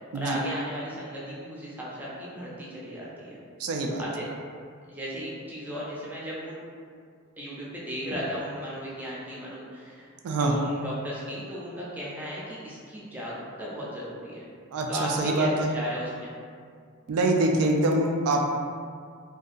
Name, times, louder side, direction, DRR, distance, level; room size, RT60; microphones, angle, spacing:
voice 1, 0.1-3.4 4.0-4.3 4.9-6.6 7.4-10.1 10.4-14.4 14.9-16.3, equal, 10° right, -7 dB, 0.4 m, -35 dB
voice 2, 3.6-4.0 10.2-10.6 14.7-15.7 17.1-18.4, right 2 dB, 85° right, 1 dB, 0.3 m, -24 dB
2.6 x 2.2 x 2.4 m, 2.1 s
head